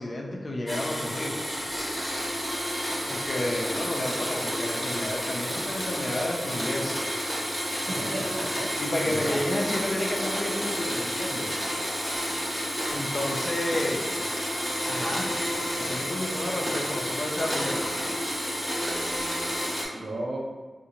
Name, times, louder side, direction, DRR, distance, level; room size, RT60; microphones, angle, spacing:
voice 1, 0.0-1.4 3.1-7.0 8.8-11.5 12.9-14.1 14.9-15.3 15.8-18.0, left 1 dB, 45° left, -1 dB, 0.5 m, -31 dB
Domestic sounds home sounds, 0.7-19.9, equal, ahead, 0.9 m, -30 dB
voice 2, 7.9-8.7 9.0-9.4 19.9-20.4, right 1 dB, 70° right, -3 dB, 0.7 m, -33 dB
3.7 x 2.6 x 2.9 m, 1.4 s
wide cardioid pair, 110°, 0 cm